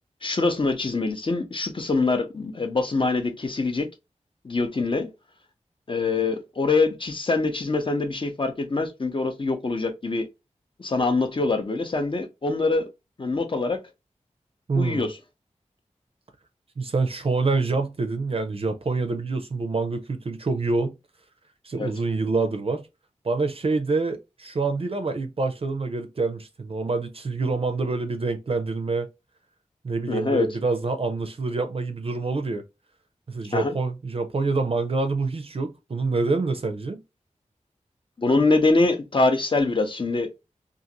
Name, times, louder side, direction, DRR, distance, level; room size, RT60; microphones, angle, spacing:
voice 1, 0.2-3.9 4.4-5.1 5.9-10.3 10.8-12.9 13.2-13.8 14.7-15.2 21.8-21.9 30.1-30.5 33.5-33.7 38.2-40.3, left 3 dB, 40° left, 0.7 m, -24 dB
voice 2, 14.7-15.1 16.8-20.9 21.6-22.9 23.2-29.1 29.8-32.6 33.3-37.0, right 3 dB, 50° right, 0.4 m, -26 dB
2.5 x 2.5 x 2.8 m
wide cardioid pair, 70°, 13 cm